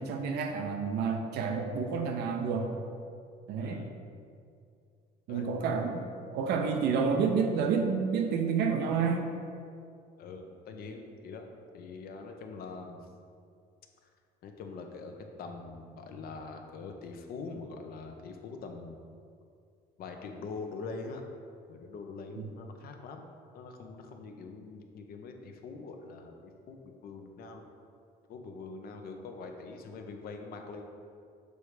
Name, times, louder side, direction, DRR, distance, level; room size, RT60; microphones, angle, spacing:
voice 1, 0.0-2.7 3.5-3.9 5.3-6.1 6.3-9.3 22.4-22.5, right 5 dB, 80° right, 4 dB, 0.7 m, -29 dB
voice 2, 3.6-4.0 5.3-5.5 10.2-13.1 14.4-19.0 20.0-21.2 21.7-23.2 23.5-27.7 28.3-30.9, left 4 dB, 65° left, 4 dB, 0.7 m, -43 dB
6.6 x 3.3 x 4.8 m, 2.3 s
cardioid pair, 110°, 17 cm